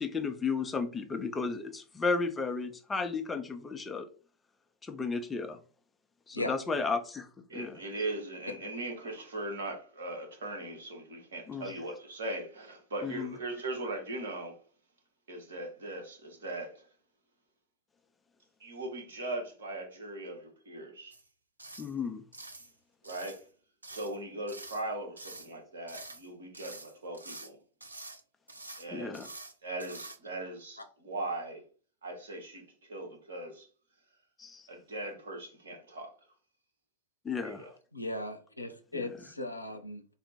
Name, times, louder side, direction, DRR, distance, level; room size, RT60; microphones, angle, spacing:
voice 1, 0.0-4.1 4.8-5.6 6.3-7.3 7.5-7.8 11.5-11.7 13.0-13.3 21.8-22.2 28.9-29.3 34.4-34.7 37.2-37.7 38.9-39.0, left 4 dB, 15° left, 0.5 m, -33 dB
voice 2, 7.5-14.5 15.3-16.8 18.6-21.1 23.0-23.4 23.9-27.6 28.8-29.3 29.6-31.6 32.0-32.6 32.9-33.7 34.7-36.1 37.4-37.7, right 2 dB, 65° right, 1.2 m, -39 dB
sound 1, 21.1-21.3 21.6-21.9 22.3-22.7 23.0-23.4 23.8-24.2 24.5-24.9 25.2-25.5 25.9-26.3 26.5-27.5 27.8-28.2 28.5-28.9 29.1-29.5 29.8-30.2, right 2 dB, 80° right, 0.5 m, -47 dB
voice 3, 37.9-40.1, left 2 dB, 85° left, 0.6 m, -37 dB
4.0 x 2.1 x 4.1 m
figure-of-eight pair, 90°, 0 cm